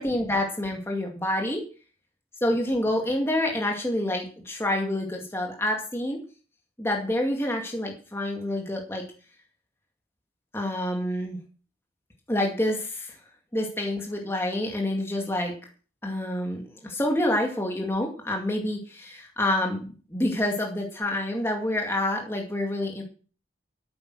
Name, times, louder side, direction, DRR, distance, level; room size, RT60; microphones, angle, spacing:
voice 1, 0.0-1.6 2.4-6.2 6.8-9.0 10.5-11.4 12.3-13.1 13.5-15.5 16.0-23.0, left 1 dB, 15° left, 1 dB, 2.3 m, -27 dB
12.5 x 8.9 x 6.3 m, 0.38 s
head